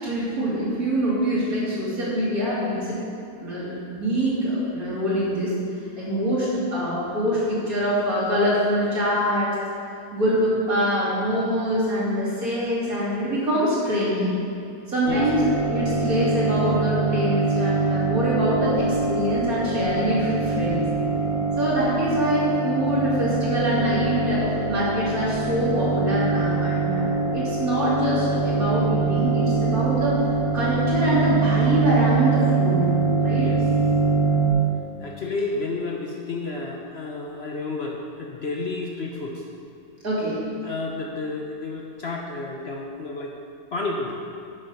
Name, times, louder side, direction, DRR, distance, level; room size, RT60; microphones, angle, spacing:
voice 1, 0.0-3.0 3.4-5.5 6.0-9.5 10.1-14.4 14.9-15.4 15.7-20.8 21.6-30.2 30.5-32.9 33.2-33.5 40.0-40.4, equal, 65° right, -8 dB, 3.4 m, -24 dB
sound 1, 15.0-34.5, right 4 dB, 65° left, 2.9 m, -24 dB
voice 2, 35.0-39.5 40.6-43.4 43.7-44.2, left 3 dB, 50° left, 0 dB, 0.9 m, -31 dB
10.5 x 6.7 x 5.6 m, 2.6 s
omnidirectional pair, 1.7 m